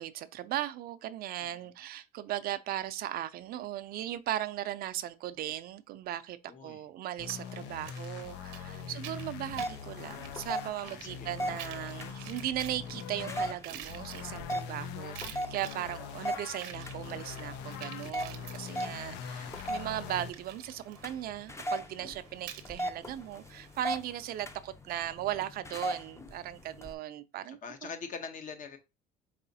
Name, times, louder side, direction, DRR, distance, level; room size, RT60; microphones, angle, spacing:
voice 1, 0.0-6.4 6.6-27.9, right 13 dB, 55° right, 0.4 m, -37 dB
voice 2, 6.5-6.8 8.9-9.2 10.8-11.3 19.0-19.7 27.5-28.8, left 5 dB, 45° left, 0.9 m, -45 dB
sound 1, 7.2-13.5 13.9-20.3, left 7 dB, 75° left, 0.4 m, -43 dB
sound 2, 7.3-24.0, right 11 dB, 80° right, 0.8 m, -50 dB
sound 3, 9.5-26.9, equal, 15° left, 0.6 m, -40 dB
4.8 x 2.9 x 2.7 m
supercardioid pair, 95°, 18 cm